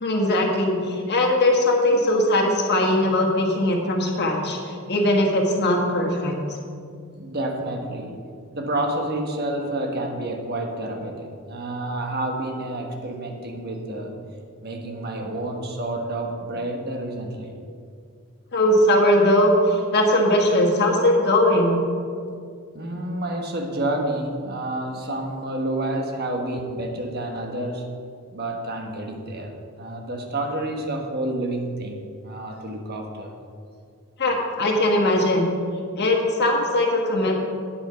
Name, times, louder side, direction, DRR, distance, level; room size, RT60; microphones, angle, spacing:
voice 1, 0.0-4.6 4.9-6.3 18.5-21.8 34.2-35.5 36.0-37.4, left 1 dB, 50° left, 1 dB, 1.5 m, -20 dB
voice 2, 7.1-8.2 8.5-14.2 14.6-17.6 22.7-27.9 28.3-33.3, right 1 dB, 45° right, 2 dB, 1.3 m, -29 dB
8.7 x 8.0 x 5.8 m, 2.3 s
head